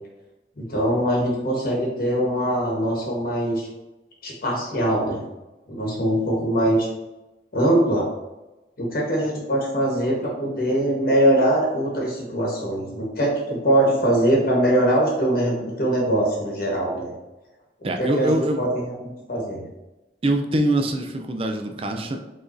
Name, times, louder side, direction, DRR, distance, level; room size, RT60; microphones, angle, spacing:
voice 1, 0.6-3.7 4.2-5.2 5.7-6.9 7.5-8.1 8.8-17.1 18.0-19.7, right 1 dB, 55° left, -3 dB, 1.2 m, -22 dB
voice 2, 17.8-18.6 20.2-22.2, right 1 dB, 30° right, 5 dB, 0.5 m, -23 dB
4.9 x 3.9 x 2.6 m, 1.0 s
head